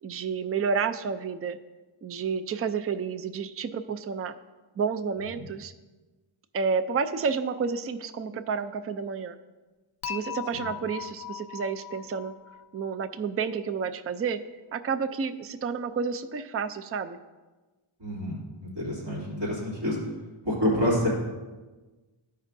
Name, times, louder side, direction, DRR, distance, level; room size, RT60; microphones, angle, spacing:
voice 1, 0.0-1.6 2.0-4.4 4.8-5.7 6.5-9.4 10.0-12.3 12.7-14.4 14.7-17.2, right 5 dB, 30° right, 10 dB, 0.4 m, -30 dB
Dishes pots and pans / Chink clink, 10.0-13.2, left 11 dB, 50° left, 0.5 m, -39 dB
voice 2, 18.0-18.3 18.6-20.0 20.4-21.1, left 1 dB, 55° right, -7 dB, 2.8 m, -27 dB
14.5 x 5.4 x 2.6 m, 1.2 s
wide cardioid pair, 110°, 48 cm